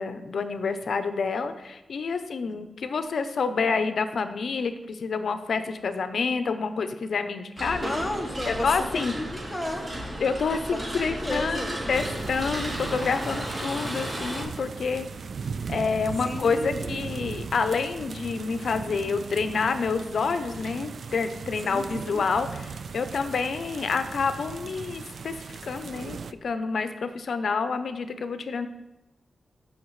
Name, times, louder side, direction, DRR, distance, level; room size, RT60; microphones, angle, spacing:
voice 1, 0.0-7.9 8.5-9.1 10.2-15.1 15.7-25.3 25.6-28.7, left 5 dB, 70° left, 9 dB, 0.6 m, -28 dB
sound 1, 7.6-14.4, equal, 35° right, 2.8 m, -34 dB
voice 2, 7.8-9.9 10.7-11.7 16.2-16.9 21.6-22.2, left 1 dB, 10° left, 2 dB, 1.1 m, -33 dB
sound 2, 11.9-26.3, right 5 dB, 60° right, 0.3 m, -38 dB
14.5 x 5.7 x 3.2 m, 1.0 s
wide cardioid pair, 125°, 0 cm